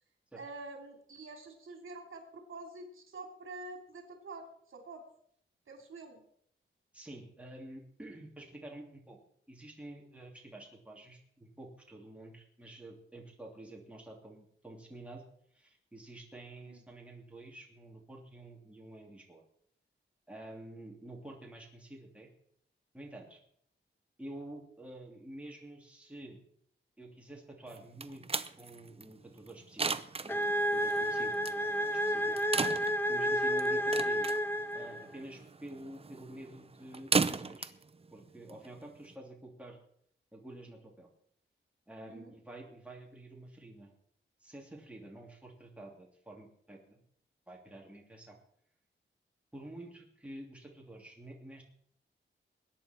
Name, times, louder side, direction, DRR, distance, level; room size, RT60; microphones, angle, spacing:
voice 1, 0.4-5.0 5.7-6.2 16.7-16.8 42.1-42.3, right 2 dB, 75° right, 3 dB, 2.9 m, -47 dB
voice 2, 6.9-9.2 9.5-15.2 15.5-19.4 20.3-22.3 22.9-23.4 24.2-26.4 27.0-28.2 28.6-30.0 30.2-31.3 32.0-32.4 33.1-34.3 34.7-37.7 38.1-39.8 40.3-41.1 41.9-43.9 44.4-47.0 47.5-48.4 49.5-51.6, right 1 dB, 5° right, -1 dB, 2.9 m, -49 dB
sound 1, 27.7-39.1, right 4 dB, 30° right, 0.6 m, -37 dB
sound 2, 30.3-35.2, equal, 10° left, 0.7 m, -31 dB
21.0 x 9.6 x 4.5 m, 0.66 s
wide cardioid pair, 145°, 21 cm